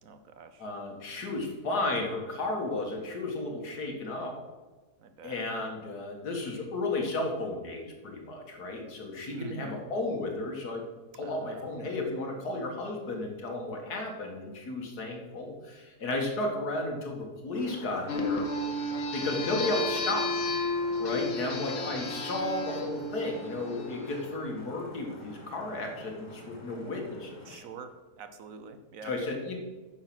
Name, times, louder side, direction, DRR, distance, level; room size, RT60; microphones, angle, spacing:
voice 1, 0.0-0.6 5.0-5.4 9.3-9.8 11.2-11.8 21.4-21.7 27.5-27.9 28.2-29.1, right 5 dB, 65° right, 9 dB, 1.2 m, -46 dB
voice 2, 0.6-4.4 5.2-10.8 11.2-18.5 19.1-20.3 21.0-27.6 29.0-29.6, left 2 dB, 85° left, 2 dB, 2.3 m, -33 dB
sound 1, 17.5-27.6, left 1 dB, 20° left, 1.8 m, -48 dB
sound 2, 18.1-24.1, left 2 dB, 60° left, 1.4 m, -32 dB
9.6 x 6.7 x 6.0 m, 1.3 s
omnidirectional pair, 1.6 m